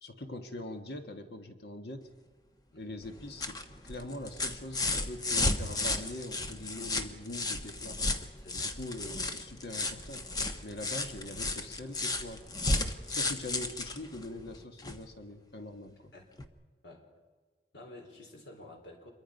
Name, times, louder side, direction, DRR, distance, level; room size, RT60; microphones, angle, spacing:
voice 1, 0.0-2.1 2.7-3.6 3.8-8.0 8.5-10.2 10.6-12.5 13.1-16.1, left 1 dB, 60° left, 6 dB, 1.5 m, -43 dB
sound 1, 3.0-15.1 16.4-16.5, left 2 dB, 20° left, 1.1 m, -34 dB
voice 2, 8.4-8.7 16.1-16.2 16.8-17.1 17.7-19.1, left 2 dB, 80° left, 2 dB, 4.4 m, -50 dB
26.5 x 23.0 x 5.3 m, 1.4 s
head